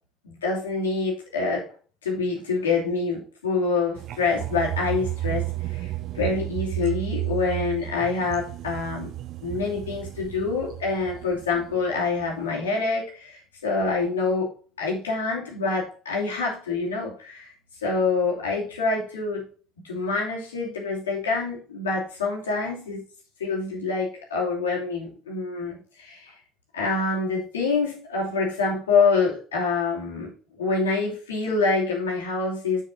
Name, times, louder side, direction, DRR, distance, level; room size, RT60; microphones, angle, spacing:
voice 1, 0.2-1.7 2.0-9.1 9.4-17.5 17.8-19.5 19.8-23.0 23.4-26.3 26.7-30.3 30.6-32.8, left 4 dB, 85° left, -2 dB, 2.8 m, -26 dB
sound 1, 4.0-11.8 12.2-12.4, right 17 dB, 55° right, 0.7 m, -33 dB
6.7 x 6.5 x 4.1 m, 0.39 s
hypercardioid pair, 60°, 0 cm